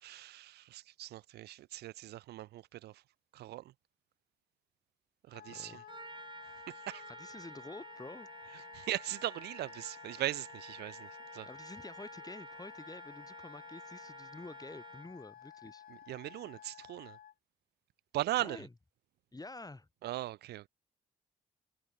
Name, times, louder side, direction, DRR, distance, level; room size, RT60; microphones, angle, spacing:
voice 1, 0.0-3.0 3.3-3.7 5.3-5.8 6.7-7.0 8.5-11.5 15.9-17.2 18.1-18.6 20.0-20.7, right 15 dB, 75° right, 0.4 m, -39 dB
Wind instrument woodwind instrument, 5.3-17.3, left 10 dB, 60° left, 0.8 m, -53 dB
voice 2, 5.5-5.8 7.1-8.3 11.5-15.8 18.4-18.7 19.3-19.9, left 2 dB, 20° left, 3.6 m, -49 dB
Trumpet, 5.9-15.2, right 3 dB, 30° right, 1.5 m, -52 dB
supercardioid pair, 50°, 17 cm